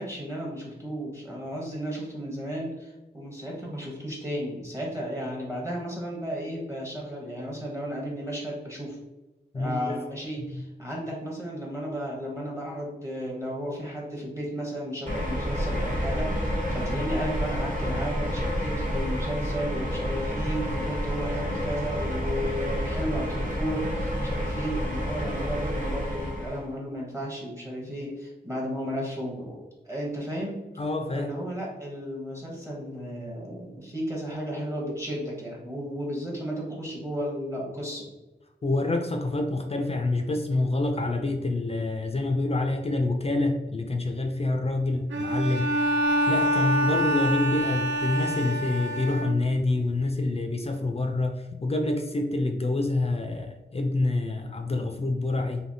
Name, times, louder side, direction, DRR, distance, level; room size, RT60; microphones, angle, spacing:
voice 1, 0.0-9.0 9.5-29.6 29.8-30.6 31.1-38.0, equal, 15° right, -3 dB, 0.8 m, -34 dB
voice 2, 9.5-10.0 10.4-10.6 30.8-31.3 38.6-45.7 46.3-51.4 51.6-55.6, left 2 dB, 35° left, 4 dB, 0.4 m, -27 dB
sound 1, 15.1-26.7, equal, 45° right, 1.0 m, -29 dB
Bowed string instrument, 45.1-49.7, right 1 dB, 85° right, 0.5 m, -26 dB
3.3 x 2.7 x 2.6 m, 1.0 s
wide cardioid pair, 90°, 19 cm